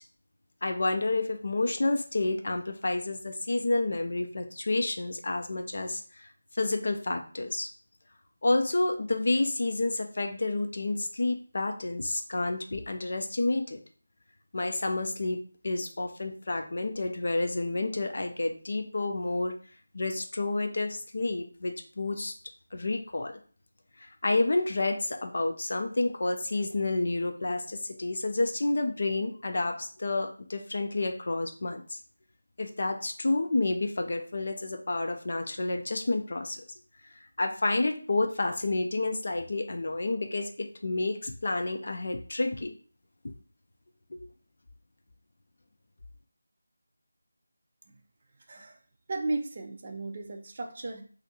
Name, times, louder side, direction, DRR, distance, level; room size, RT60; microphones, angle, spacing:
voice 1, 0.6-6.3 6.5-7.7 8.4-13.8 14.5-19.6 19.9-22.3 22.7-23.4 24.2-32.0 32.6-36.6 37.4-42.7 43.2-43.3 44.1-44.3, left 2 dB, 45° left, 5 dB, 0.4 m, -29 dB
voice 2, 48.5-48.8 49.1-51.0, right 2 dB, 30° right, 3 dB, 0.4 m, -35 dB
2.6 x 2.4 x 4.0 m, 0.42 s
figure-of-eight pair, 165°, 0 cm